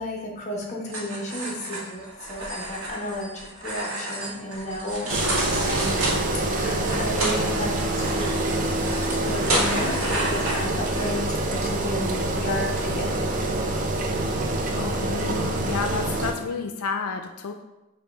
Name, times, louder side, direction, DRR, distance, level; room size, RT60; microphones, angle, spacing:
voice 1, 0.0-2.0 2.3-5.2 5.5-6.1 6.5-8.8 9.1-13.2, left 1 dB, 35° left, -3 dB, 0.9 m, -33 dB
sound 1, 0.9-11.4, right 1 dB, 70° right, 1.1 m, -35 dB
sound 2, 4.8-6.2 6.9-7.4 7.8-8.6 8.9-9.0 9.4-9.7 10.2-10.3, right 1 dB, 85° right, 1.5 m, -26 dB
Engine, 5.1-16.3, right 2 dB, 35° right, 0.5 m, -26 dB
voice 2, 5.4-5.8 14.7-17.5, left 5 dB, 90° left, 5 dB, 0.4 m, -31 dB
5.4 x 2.3 x 4.0 m, 0.99 s
head